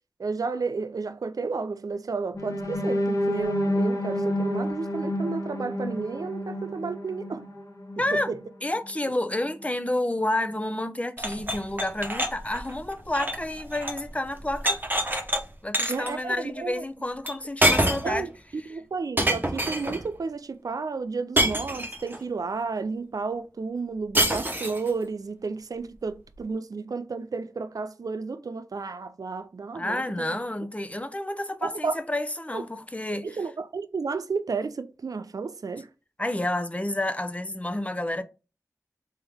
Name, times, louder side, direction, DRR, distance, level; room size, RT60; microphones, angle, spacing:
voice 1, 0.2-7.4 15.9-16.8 18.0-18.3 18.7-30.3 31.6-32.0 32.5-32.6 33.2-35.9, right 4 dB, 70° right, 0.3 m, -32 dB
sound 1, 2.3-8.3 8.8-8.9 9.3-9.5, equal, 60° left, 1.0 m, -29 dB
voice 2, 8.0-8.4 8.6-14.8 15.6-18.3 18.6-18.8 29.7-33.5 36.2-38.2, left 1 dB, 20° left, 0.6 m, -30 dB
sound 2, 11.2-14.1 14.3-15.4 15.7-16.1 17.3-17.4 17.6-18.2 19.2-20.0 21.4-22.2 24.1-24.9, right 1 dB, 30° right, 0.9 m, -26 dB
3.6 x 3.0 x 3.4 m
wide cardioid pair, 50°, 6 cm